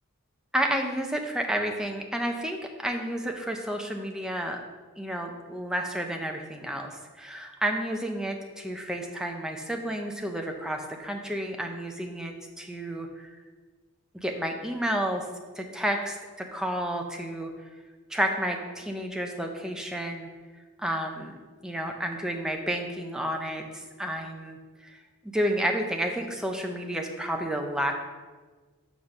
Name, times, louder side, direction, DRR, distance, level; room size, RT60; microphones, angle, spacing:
voice 1, 0.5-4.6 5.0-13.4 14.1-15.3 15.6-17.5 18.1-20.3 20.8-21.4 21.6-27.9, right 1 dB, 5° right, 3 dB, 0.5 m, -31 dB
5.0 x 4.2 x 5.9 m, 1.4 s
head